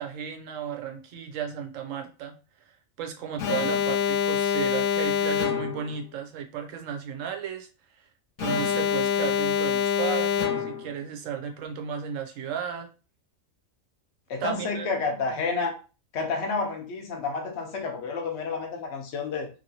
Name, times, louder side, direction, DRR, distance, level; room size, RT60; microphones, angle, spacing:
voice 1, 0.0-2.3 3.0-7.7 8.0-8.1 8.4-12.9 14.4-14.9, right 8 dB, 70° right, 4 dB, 1.0 m, -34 dB
Alarm, 3.4-5.9 8.4-10.9, left 9 dB, 85° left, 1.0 m, -25 dB
voice 2, 14.3-15.7 16.1-19.5, left 4 dB, 60° left, 2 dB, 1.0 m, -30 dB
2.9 x 2.7 x 2.7 m, 0.34 s
omnidirectional pair, 1.4 m